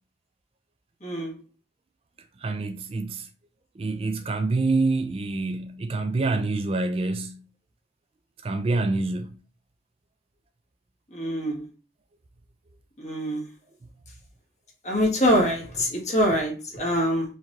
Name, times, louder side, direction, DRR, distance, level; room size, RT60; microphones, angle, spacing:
voice 1, 1.0-1.3 11.1-11.6 13.0-13.4 14.8-17.3, equal, 40° left, 1.8 m, -24 dB
voice 2, 2.4-3.3 3.8-7.4 8.4-9.4, right 3 dB, 30° right, 0.4 m, -26 dB
4.6 x 2.7 x 3.7 m
head